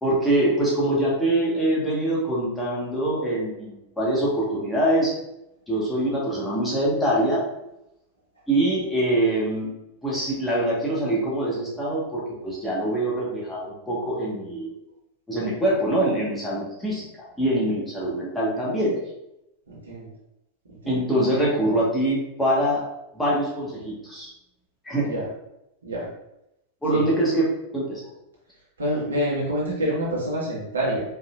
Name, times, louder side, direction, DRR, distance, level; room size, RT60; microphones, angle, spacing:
voice 1, 0.0-5.1 5.7-7.4 8.5-9.7 10.0-14.7 15.3-17.0 17.4-18.9 20.9-22.8 23.1-24.3 24.8-25.1 26.8-27.5 27.7-28.0, right 1 dB, 5° left, -6 dB, 1.6 m, -24 dB
voice 2, 19.7-20.1 25.0-25.2 25.8-26.1 26.9-27.0 28.8-31.0, equal, 70° right, -6 dB, 1.6 m, -26 dB
4.5 x 3.8 x 2.6 m, 0.86 s
figure-of-eight pair, 90°, 0 cm